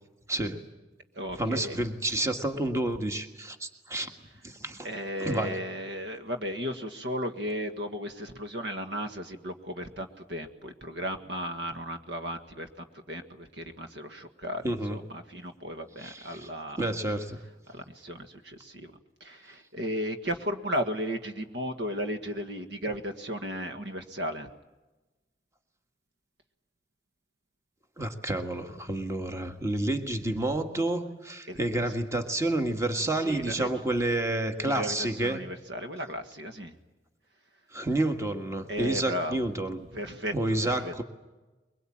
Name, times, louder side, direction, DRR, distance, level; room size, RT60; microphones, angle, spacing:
voice 1, 0.3-0.7 1.3-4.1 4.4-4.9 5.2-5.6 14.6-15.0 16.0-16.5 16.8-17.4 28.0-35.4 37.7-39.9 40.3-41.0, right 1 dB, 15° right, 6 dB, 1.6 m, -29 dB
voice 2, 1.2-1.8 4.8-14.6 14.9-16.8 17.7-18.9 19.2-24.5 31.5-31.6 33.2-33.7 34.7-36.8 38.7-39.4 39.9-40.9, equal, 75° right, 7 dB, 1.7 m, -35 dB
23.0 x 21.5 x 8.8 m, 1.1 s
head